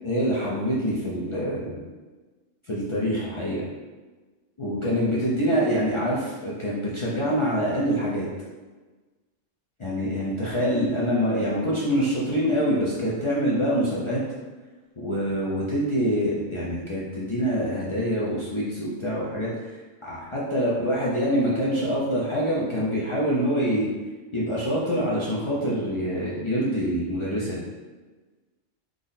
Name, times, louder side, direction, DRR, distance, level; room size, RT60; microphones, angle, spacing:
voice 1, 0.0-1.8 2.7-3.7 4.6-8.3 9.8-14.2 15.0-19.7 20.0-23.9 24.3-27.6, equal, 55° left, -7 dB, 0.3 m, -25 dB
3.7 x 2.0 x 3.9 m, 1.3 s
omnidirectional pair, 1.3 m